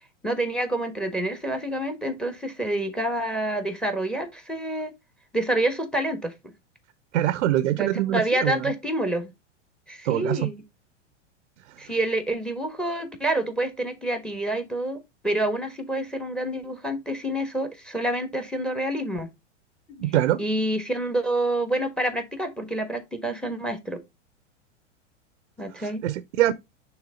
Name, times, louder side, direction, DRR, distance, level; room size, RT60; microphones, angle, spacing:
voice 1, 0.2-4.9 5.3-6.3 7.8-9.3 9.9-10.5 11.8-19.3 19.9-20.1 20.4-24.0 25.6-26.0, right 1 dB, ahead, 1.3 m, -27 dB
voice 2, 7.1-8.7 10.0-10.4 11.8-11.9 20.0-20.4 25.8-26.5, right 13 dB, 70° right, 0.7 m, -24 dB
6.3 x 3.4 x 4.9 m
hypercardioid pair, 110°, 36 cm